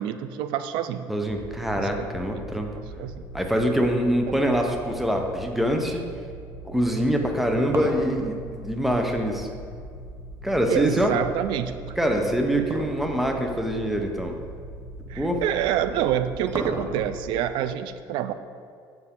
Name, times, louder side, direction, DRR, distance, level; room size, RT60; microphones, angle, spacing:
voice 1, 0.0-1.1 1.8-2.1 2.3-2.4 2.7-3.2 4.3-4.4 10.7-12.7 15.1-18.3, right 10 dB, 75° right, 11 dB, 0.4 m, -28 dB
voice 2, 1.1-2.7 3.3-6.0 6.7-9.5 10.4-11.1 12.0-14.4 15.2-15.4, equal, 5° right, 3 dB, 0.8 m, -24 dB
sound 1, 1.3-17.3, right 1 dB, 50° right, 1.8 m, -41 dB
sound 2, 7.2-9.7 11.0-11.9 12.6-13.1 13.4-13.5 14.3-14.4 15.8-17.3, right 2 dB, 30° right, 0.9 m, -33 dB
7.7 x 6.9 x 3.7 m, 2.3 s
cardioid pair, 125°, 8 cm